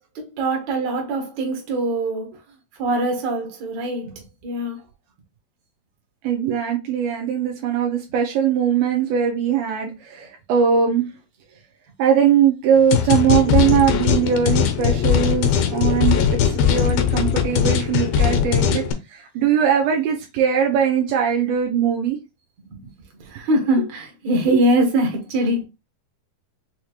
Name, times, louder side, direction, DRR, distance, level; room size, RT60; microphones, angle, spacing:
voice 1, 0.2-2.3 2.8-4.8 22.7-22.9 23.2-25.6, right 1 dB, 55° right, 2.3 m, -23 dB
voice 2, 6.2-11.1 12.0-22.2 24.5-24.6, right 8 dB, 80° right, 2.4 m, -20 dB
sound 1, 12.9-18.9, left 8 dB, 85° left, 2.5 m, -19 dB
6.4 x 2.9 x 2.4 m
omnidirectional pair, 4.3 m